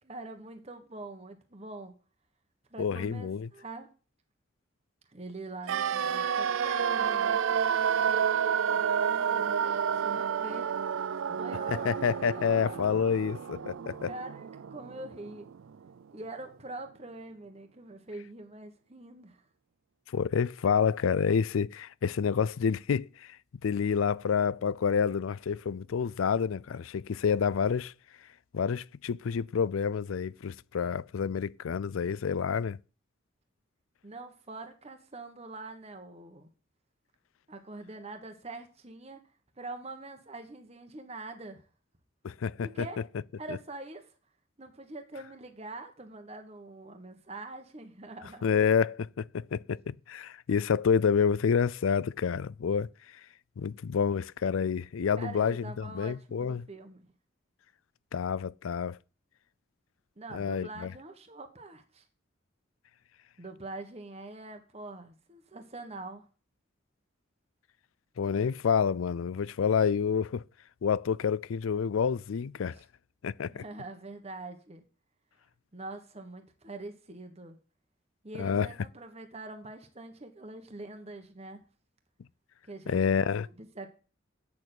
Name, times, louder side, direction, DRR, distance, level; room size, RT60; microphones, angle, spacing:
voice 1, 0.0-1.9 2.7-3.9 5.1-7.4 9.0-10.7 11.3-12.0 12.3-12.8 14.1-15.5 16.1-19.4 34.0-36.5 37.5-39.2 39.6-41.6 42.6-43.0 43.4-44.1 44.6-48.4 55.2-57.1 60.2-62.0 63.4-66.3 72.7-72.8 73.5-74.8 75.7-77.6 78.2-81.6 82.7-83.9, right 2 dB, 30° right, 1.4 m, -44 dB
voice 2, 2.8-3.5 11.7-14.1 20.1-23.4 23.6-27.9 28.5-32.8 42.2-42.9 43.5-43.6 48.4-53.2 53.6-56.7 58.1-59.0 60.3-60.9 68.2-70.4 70.8-72.8 73.2-73.6 78.4-78.7 82.9-83.5, left 6 dB, 85° left, 0.4 m, -28 dB
sound 1, 5.7-15.6 15.9-16.0, right 7 dB, 80° right, 0.4 m, -30 dB
8.5 x 6.7 x 7.9 m
head